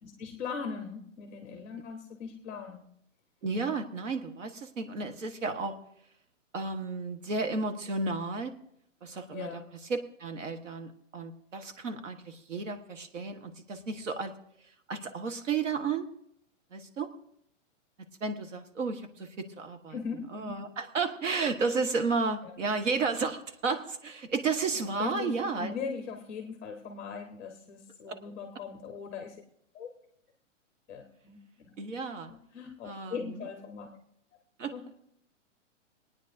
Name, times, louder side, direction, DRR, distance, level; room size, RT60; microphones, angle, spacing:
voice 1, 0.0-2.8 9.3-9.6 19.9-20.5 22.4-22.5 25.0-29.4 29.7-29.9 30.9-31.7 32.1-34.0 34.7-35.0, left 6 dB, 10° left, 4 dB, 0.7 m, -40 dB
voice 2, 3.4-5.7 6.5-8.5 9.0-9.5 9.9-14.3 14.9-16.1 16.7-17.1 18.2-19.9 20.3-25.7 28.1-28.2 31.8-32.3 32.8-33.5 34.6-34.7, right 4 dB, 75° right, 7 dB, 1.5 m, -32 dB
27.5 x 9.4 x 2.7 m, 0.71 s
hypercardioid pair, 180°, 38 cm